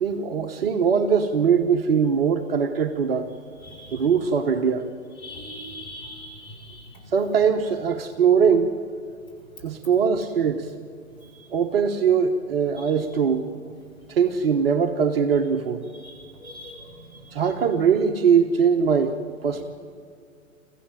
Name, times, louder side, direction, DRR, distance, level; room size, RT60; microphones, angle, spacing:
voice 1, 0.0-3.3 3.9-4.9 7.1-8.7 9.6-10.7 11.5-13.5 14.1-15.9 17.3-19.2 19.4-19.6, right 6 dB, 45° right, 5 dB, 1.1 m, -21 dB
voice 2, 3.6-4.0 5.2-6.9 16.0-16.8 17.1-17.2, left 1 dB, 10° left, -4 dB, 5.8 m, -41 dB
24.0 x 15.0 x 7.5 m, 2.3 s
figure-of-eight pair, 120°, 41 cm